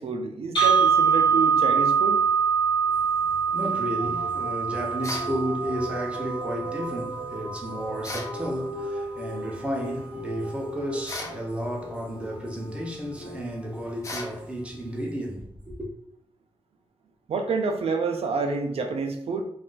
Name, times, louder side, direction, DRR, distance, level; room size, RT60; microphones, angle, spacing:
voice 1, 0.0-2.2 17.3-19.4, right 4 dB, 85° right, 0.4 m, -28 dB
sound 1, 0.6-8.6, right 6 dB, 50° left, 1.0 m, -24 dB
voice 2, 3.2-15.9, equal, 10° right, 0.6 m, -32 dB
sound 2, 4.0-14.7, equal, 80° left, 0.8 m, -38 dB
sound 3, 5.0-5.3 8.0-8.4 11.1-11.4 14.0-14.4, left 2 dB, 30° left, 0.5 m, -35 dB
2.4 x 2.3 x 3.7 m
wide cardioid pair, 170°, 10 cm